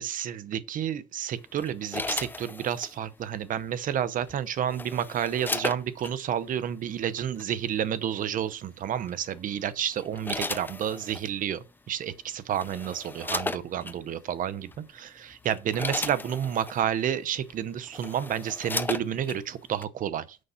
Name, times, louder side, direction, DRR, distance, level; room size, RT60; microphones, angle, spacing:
voice 1, 0.0-20.4, right 9 dB, 55° right, 0.7 m, -30 dB
sound 1, 1.6-3.0 4.3-6.1 7.2-7.4 9.1-9.4 9.9-11.3 12.1-12.2 12.5-14.0 14.7-14.9 15.3-16.8 17.5-17.6 17.9-19.4 19.8-19.9, left 3 dB, 10° left, 0.4 m, -35 dB
6.4 x 5.3 x 5.6 m
cardioid pair, 110°, 17 cm